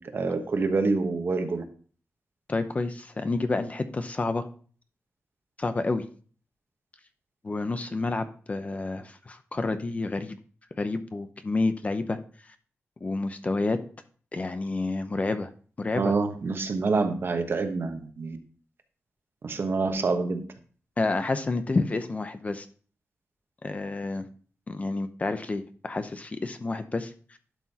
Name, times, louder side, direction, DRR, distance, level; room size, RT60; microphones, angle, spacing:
voice 1, 0.0-1.6 16.0-18.4 19.4-20.4, right 4 dB, 50° right, 6 dB, 1.2 m, -27 dB
voice 2, 2.5-4.5 5.6-6.0 7.4-10.4 10.8-12.2 13.0-13.8 14.3-15.5 15.8-16.1 21.0-22.7 23.6-24.3 24.7-27.1, left 3 dB, 30° left, 9 dB, 0.7 m, -29 dB
11.5 x 6.1 x 2.8 m, 0.42 s
wide cardioid pair, 155°, 5 cm